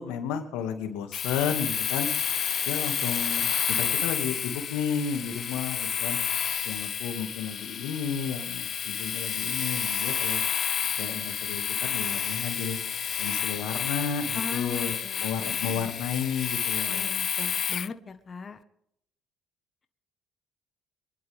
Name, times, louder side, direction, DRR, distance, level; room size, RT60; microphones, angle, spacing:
voice 1, 0.0-2.1 2.7-6.2 6.6-10.4 11.0-12.8 13.2-17.2, left 7 dB, 90° left, 6 dB, 2.3 m, -32 dB
Domestic sounds home sounds, 1.1-17.9, left 8 dB, 50° left, 0.5 m, -30 dB
voice 2, 14.3-15.9 16.9-18.6, left 5 dB, 35° left, 8 dB, 1.6 m, -39 dB
25.0 x 11.5 x 3.7 m, 0.71 s
supercardioid pair, 85°, 0 cm